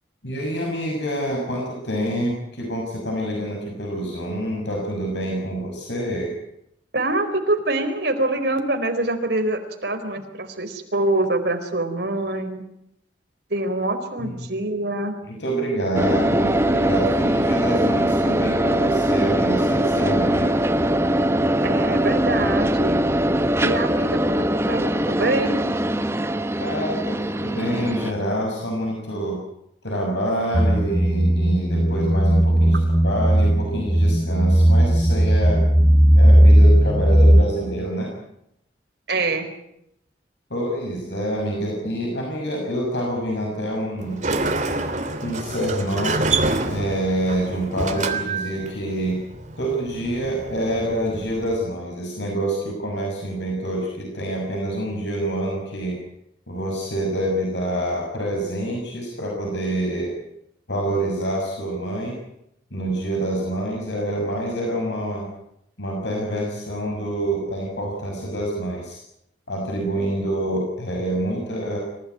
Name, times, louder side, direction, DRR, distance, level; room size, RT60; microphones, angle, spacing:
voice 1, 0.2-6.3 14.2-14.5 15.3-20.5 26.6-29.4 29.8-35.6 36.1-38.1 40.5-44.2 45.2-46.2 46.7-49.2 49.6-56.0 56.5-60.1 60.7-62.2 62.7-65.3 65.8-69.0 69.5-71.8, right 1 dB, 70° left, 0 dB, 6.6 m, -26 dB
voice 2, 6.9-12.6 13.5-15.1 21.6-23.1 23.6-25.6 39.1-39.5, right 2 dB, 60° right, 5 dB, 4.5 m, -25 dB
sound 1, 15.9-28.1, right 1 dB, 15° right, 1.1 m, -21 dB
sound 2, 30.5-37.4, equal, 5° left, 1.3 m, -16 dB
Sliding door, 44.0-51.6, right 3 dB, 40° right, 3.2 m, -27 dB
26.5 x 16.5 x 9.6 m, 0.80 s
head